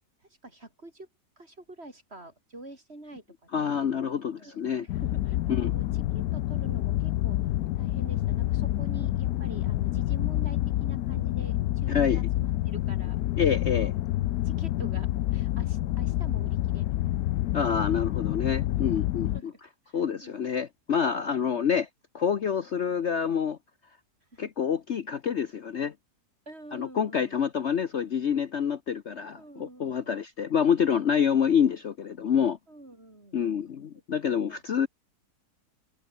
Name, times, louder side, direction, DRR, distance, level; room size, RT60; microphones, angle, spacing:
voice 1, 0.4-1.1 1.4-3.7 4.4-7.4 7.7-13.9 14.4-17.3 18.8-19.1 19.3-20.4 21.4-21.8 24.3-24.5 26.5-27.5 29.3-30.2 32.7-33.4 33.9-34.0 34.3-34.6, right 2 dB, 40° right, 5.6 m, -47 dB
voice 2, 3.5-4.9 5.5-5.7 11.9-12.2 13.4-13.9 17.5-19.5 19.9-21.9 22.1-23.6 24.4-25.9 26.7-32.6 33.3-34.9, left 7 dB, 50° left, 1.1 m, -27 dB
sound 1, 4.9-19.4, left 14 dB, 75° left, 1.0 m, -28 dB
omnidirectional pair, 1.7 m